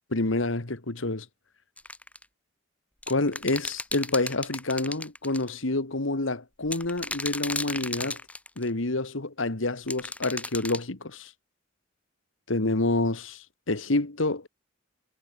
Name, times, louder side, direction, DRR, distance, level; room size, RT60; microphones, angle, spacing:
voice 1, 0.1-1.3 3.1-8.2 8.6-11.3 12.5-14.5, left 2 dB, 70° left, 1.8 m, -28 dB
sound 1, 1.8-2.2 3.0-5.5 6.7-8.7 9.9-10.8, left 2 dB, 5° left, 2.9 m, -34 dB
head